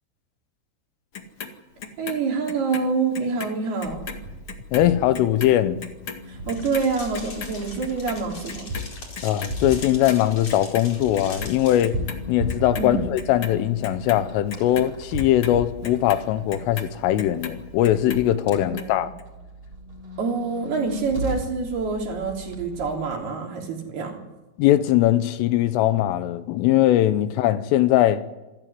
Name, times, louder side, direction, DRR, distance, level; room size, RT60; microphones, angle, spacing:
Clock, 1.1-3.5 3.8-10.2 10.5-11.5 11.8-12.8 13.2-17.6 17.8-18.8 19.2-19.3, left 6 dB, 60° left, 1.4 m, -37 dB
voice 1, 2.0-4.1 6.3-8.7 12.8-13.0 18.6-19.1 20.2-24.2, right 4 dB, 50° right, 5.2 m, -27 dB
sound 1, 3.8-23.1, equal, 30° right, 7.2 m, -37 dB
voice 2, 4.7-5.8 9.2-12.0 12.3-19.1 24.6-28.2, left 13 dB, 80° left, 3.5 m, -20 dB
sound 2, 6.5-11.8, left 3 dB, 30° left, 5.1 m, -41 dB
27.0 x 15.0 x 9.5 m
omnidirectional pair, 5.9 m